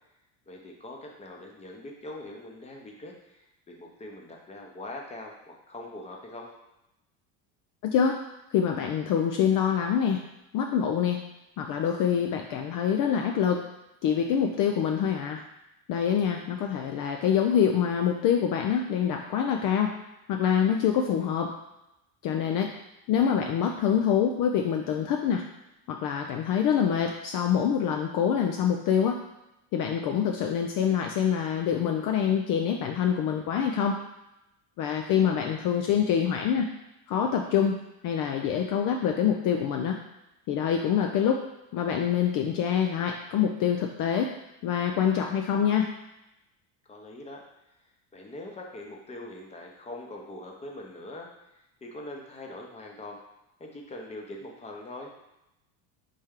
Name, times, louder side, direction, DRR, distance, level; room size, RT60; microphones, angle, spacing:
voice 1, 0.5-6.5 21.0-21.4 35.1-35.6 46.9-47.4 47.8-53.2 53.6-55.1, left 1 dB, 15° left, 0 dB, 0.8 m, -43 dB
voice 2, 7.8-8.2 8.5-10.2 10.5-11.2 11.6-13.6 14.0-15.4 15.9-19.9 20.3-21.5 22.2-22.7 23.1-25.4 25.9-29.2 29.7-33.9 34.8-36.7 37.1-37.8 38.0-40.0 40.5-41.4 41.7-44.3 44.6-45.9, left 8 dB, 50° left, 2 dB, 0.5 m, -25 dB
4.2 x 3.4 x 3.6 m, 0.90 s
supercardioid pair, 110°, 42 cm